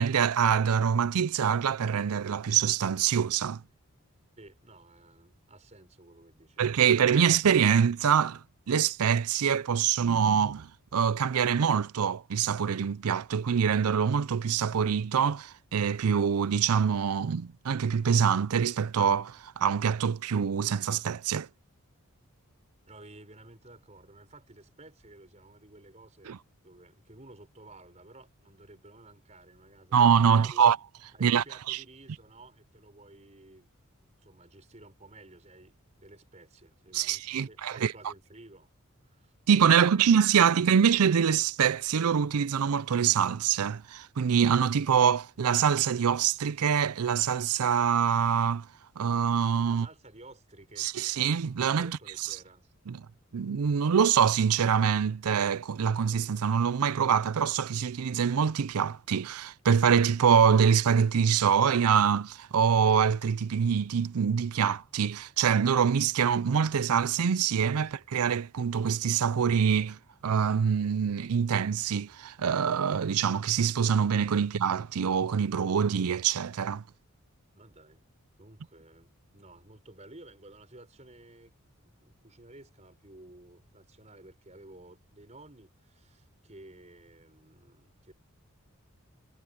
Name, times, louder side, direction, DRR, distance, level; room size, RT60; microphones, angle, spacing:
voice 1, 0.0-3.6 6.6-21.5 26.3-26.4 29.9-30.8 31.2-31.8 36.9-37.9 39.5-48.7 49.0-49.9 50.8-52.0 52.9-53.0 53.3-70.0 70.2-76.8, right 7 dB, 80° right, 0.5 m, -25 dB
voice 2, 4.4-6.8 22.9-26.4 26.6-30.7 31.1-33.7 34.2-38.7 39.0-39.7 49.7-50.9 51.8-52.7 77.5-78.1 78.4-88.1, right 2 dB, 30° right, 5.1 m, -53 dB
head